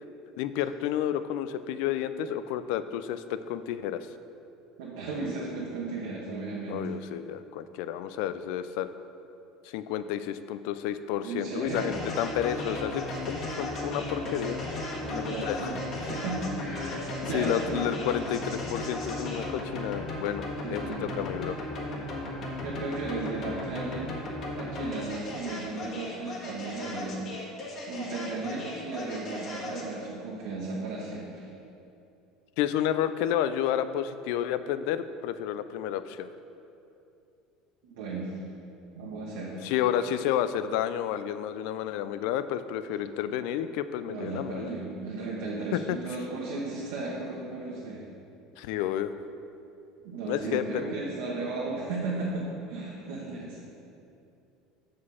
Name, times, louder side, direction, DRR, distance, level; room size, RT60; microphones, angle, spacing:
voice 1, 0.4-4.1 6.7-8.9 9.6-14.6 15.1-15.8 17.2-20.4 20.7-21.6 32.6-36.3 39.6-44.7 45.7-46.0 48.6-49.1 50.3-50.9, left 10 dB, 75° left, 12 dB, 0.3 m, -31 dB
voice 2, 4.8-6.8 11.2-11.9 15.0-15.8 16.1-17.8 20.6-21.2 22.6-24.1 24.6-27.2 27.9-31.5 37.8-38.3 38.9-39.7 44.0-48.0 50.0-53.6, right 3 dB, 90° right, -6 dB, 1.2 m, -35 dB
sound 1, 11.6-29.9, left 1 dB, 50° left, 1.5 m, -36 dB
6.4 x 5.1 x 5.5 m, 2.7 s
supercardioid pair, 115°, 0 cm